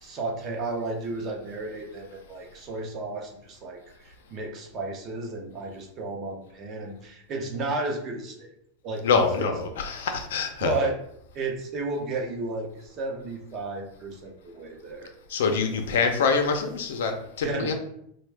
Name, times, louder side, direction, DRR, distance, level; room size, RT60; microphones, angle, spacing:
voice 1, 0.0-8.5 8.8-9.5 10.6-11.0 11.3-15.1 17.4-17.7, right 2 dB, 30° right, 1 dB, 0.7 m, -33 dB
voice 2, 9.0-10.8 15.3-17.7, left 5 dB, 85° left, 5 dB, 0.5 m, -25 dB
3.4 x 2.2 x 3.3 m, 0.72 s
supercardioid pair, 155°, 0 cm